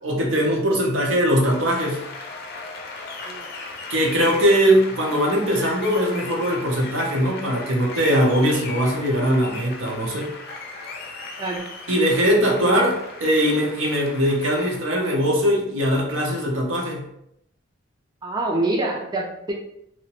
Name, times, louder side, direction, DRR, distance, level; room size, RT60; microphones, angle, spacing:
voice 1, 0.0-2.0 3.9-10.3 11.9-17.1, equal, 85° right, -1 dB, 0.7 m, -21 dB
Applause, 1.2-14.8, left 3 dB, 55° left, 0.4 m, -37 dB
voice 2, 11.4-11.7 18.2-19.5, right 2 dB, 20° right, -1 dB, 0.3 m, -26 dB
2.7 x 2.1 x 2.9 m, 0.76 s
head